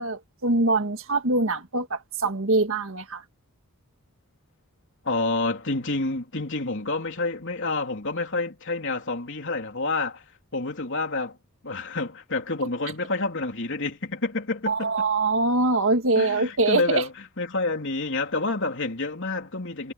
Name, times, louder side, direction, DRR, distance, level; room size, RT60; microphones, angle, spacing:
voice 1, 0.0-3.2 14.7-17.0, right 2 dB, 60° right, 1.9 m, -23 dB
voice 2, 5.0-10.2 10.5-11.4 11.6-15.1 16.2-19.9, left 3 dB, 55° left, 3.3 m, -28 dB
head